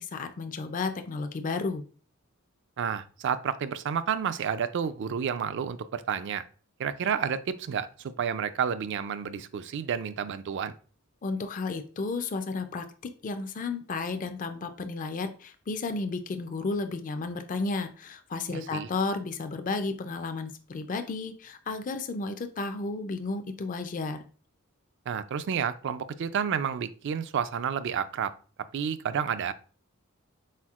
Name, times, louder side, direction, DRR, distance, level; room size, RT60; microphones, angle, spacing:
voice 1, 0.0-1.8 11.2-24.2, left 3 dB, 40° left, 8 dB, 0.4 m, -33 dB
voice 2, 2.8-6.4 6.8-10.7 18.5-18.9 25.1-28.3 28.7-29.5, right 7 dB, 55° right, 13 dB, 0.3 m, -30 dB
4.3 x 4.0 x 2.4 m, 0.39 s
head